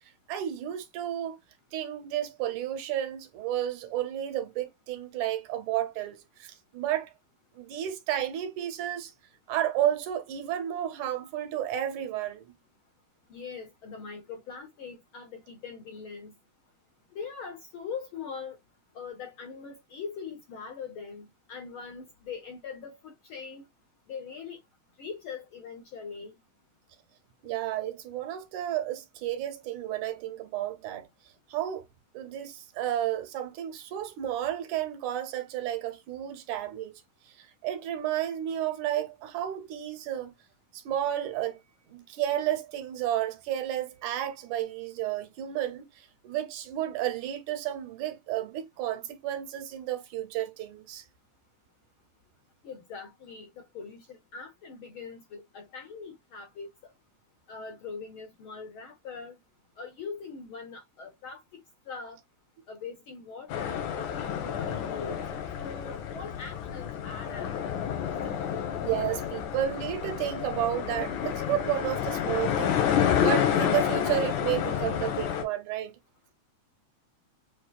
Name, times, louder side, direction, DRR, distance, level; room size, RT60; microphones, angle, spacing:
voice 1, 0.3-1.4 1.7-7.1 7.5-9.1 9.5-12.5 27.4-31.1 31.5-31.8 32.1-36.9 37.3-40.3 40.7-41.6 41.9-51.0 68.8-72.7 73.2-76.0, right 12 dB, 85° right, 2.4 m, -32 dB
voice 2, 13.3-16.3 17.1-18.6 18.9-23.6 24.1-24.6 25.0-26.3 52.6-56.7 57.5-59.4 59.8-61.6 61.9-62.2 62.7-65.2 65.6-67.5, left 5 dB, 65° left, 1.3 m, -41 dB
sound 1, 63.5-75.4, left 9 dB, 85° left, 2.7 m, -29 dB
7.2 x 3.1 x 2.3 m
omnidirectional pair, 3.4 m